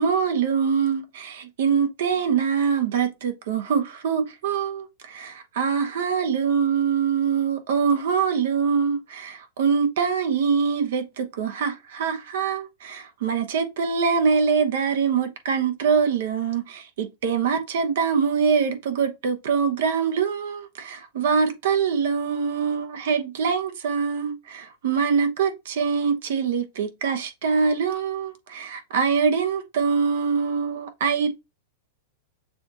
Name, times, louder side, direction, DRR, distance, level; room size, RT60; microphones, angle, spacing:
voice 1, 0.0-31.3, right 6 dB, 70° right, 1.0 m, -24 dB
6.8 x 2.6 x 2.9 m
hypercardioid pair, 110°, 0 cm